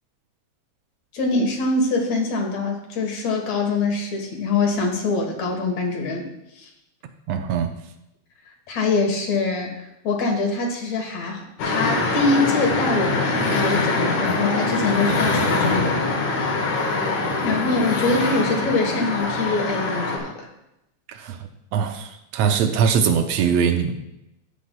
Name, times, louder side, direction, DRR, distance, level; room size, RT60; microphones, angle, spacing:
voice 1, 1.1-6.3 6.6-6.7 8.7-9.7 10.0-16.0 17.4-20.5, left 3 dB, 65° left, 2 dB, 2.5 m, -24 dB
voice 2, 7.3-7.7 21.1-23.9, right 7 dB, 75° right, 7 dB, 1.6 m, -22 dB
sound 1, 11.6-20.2, left 3 dB, 90° left, 3.0 m, -23 dB
13.5 x 8.4 x 2.2 m, 0.87 s
omnidirectional pair, 3.4 m